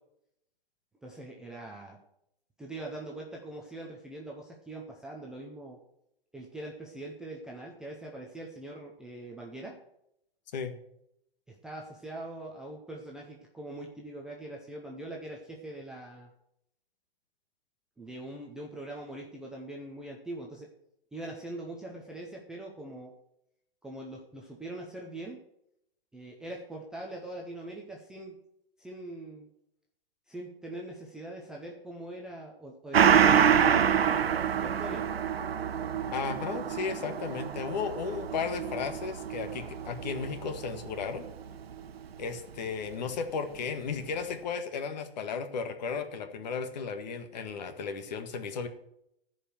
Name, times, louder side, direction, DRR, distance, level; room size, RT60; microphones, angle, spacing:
voice 1, 1.0-2.0 2.6-5.8 6.3-9.7 11.5-16.3 18.0-20.7 21.1-23.1 23.8-25.4 26.1-28.4 28.8-29.5 30.3-34.0 34.6-35.0, right 2 dB, ahead, -2 dB, 0.5 m, -42 dB
Gong, 32.9-41.9 42.2-42.3, right 8 dB, 80° right, 1.0 m, -27 dB
voice 2, 36.1-41.3 42.2-48.7, left 5 dB, 45° left, 7 dB, 1.7 m, -34 dB
14.5 x 5.2 x 9.1 m, 0.77 s
hypercardioid pair, 155°, 30 cm